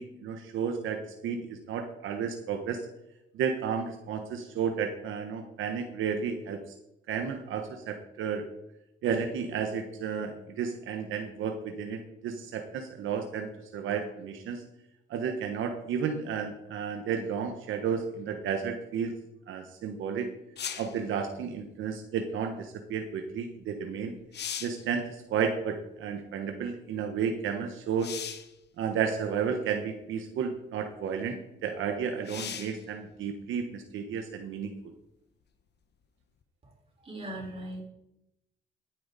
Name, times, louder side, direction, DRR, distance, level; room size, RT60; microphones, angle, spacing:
voice 1, 0.0-2.8 3.3-6.6 7.1-8.5 9.0-14.6 15.1-19.1 19.5-20.3 20.8-24.1 24.6-28.1 28.8-34.7, right 6 dB, 80° right, 5 dB, 1.3 m, -32 dB
sound 1, 20.6-21.0 23.7-23.8 24.2-24.9 28.0-28.5 29.6-29.7 32.2-32.8 36.4-36.5, left 8 dB, 60° left, 1.2 m, -38 dB
voice 2, 37.0-37.8, right 1 dB, 30° right, -2 dB, 4.9 m, -38 dB
14.0 x 9.0 x 4.1 m, 0.85 s
cardioid pair, 90°, 20 cm